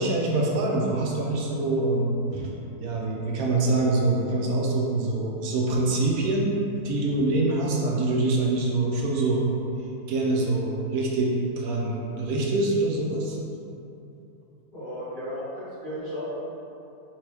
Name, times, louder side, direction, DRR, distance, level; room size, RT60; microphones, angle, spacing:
voice 1, 0.0-2.5 2.8-9.5 10.1-13.4, right 2 dB, 70° right, -2 dB, 1.0 m, -25 dB
voice 2, 14.7-16.3, equal, 35° left, -13 dB, 1.4 m, -34 dB
4.3 x 3.0 x 3.3 m, 2.8 s
omnidirectional pair, 1.8 m